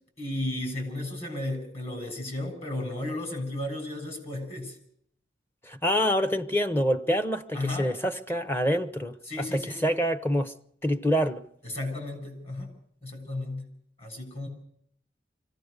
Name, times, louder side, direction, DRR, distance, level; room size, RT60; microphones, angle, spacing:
voice 1, 0.2-4.7 7.5-7.9 9.3-9.9 11.6-12.7 13.0-13.7 14.0-14.5, left 1 dB, 35° left, 7.2 m, -34 dB
voice 2, 5.7-10.5 10.8-11.4, equal, 10° left, 0.9 m, -26 dB
25.0 x 16.0 x 6.7 m
head